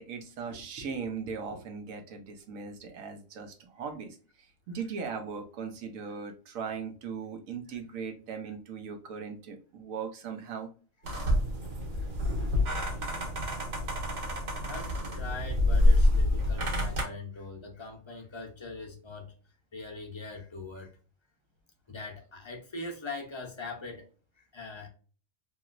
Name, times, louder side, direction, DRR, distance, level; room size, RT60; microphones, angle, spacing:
voice 1, 0.0-4.2 4.7-10.7, right 6 dB, 85° right, 1.2 m, -38 dB
sound 1, 11.0-17.0, left 1 dB, 65° right, 1.5 m, -27 dB
voice 2, 14.5-19.3 19.7-21.0 21.9-24.1 24.4-24.9, left 3 dB, 30° left, 0.5 m, -42 dB
3.0 x 2.9 x 2.4 m
omnidirectional pair, 1.4 m